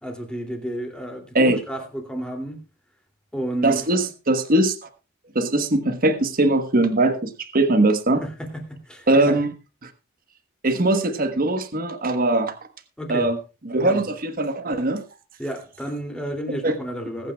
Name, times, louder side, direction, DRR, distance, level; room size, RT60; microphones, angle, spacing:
voice 1, 0.0-2.6 3.3-3.8 8.2-9.4 13.0-13.3 13.8-14.0 15.4-17.3, right 1 dB, 5° left, 2.6 m, -31 dB
voice 2, 3.6-4.7 5.3-8.2 9.1-9.5 9.8-9.9 10.6-12.5 13.1-13.4 13.6-15.0 16.6-16.8, right 2 dB, 45° right, 1.2 m, -21 dB
21.0 x 9.3 x 2.3 m
head